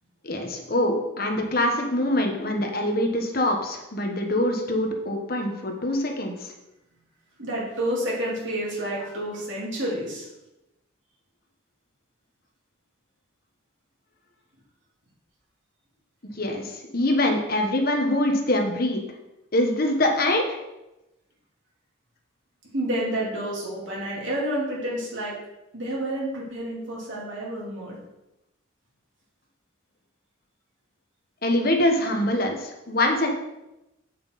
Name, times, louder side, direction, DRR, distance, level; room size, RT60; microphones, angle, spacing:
voice 1, 0.2-6.5 16.4-19.0 19.5-20.6 31.4-33.3, left 1 dB, 45° left, 3 dB, 1.2 m, -24 dB
voice 2, 7.4-10.3 22.7-25.3 25.7-28.0, right 1 dB, 65° right, -5 dB, 3.5 m, -29 dB
8.4 x 7.6 x 4.2 m, 0.93 s
head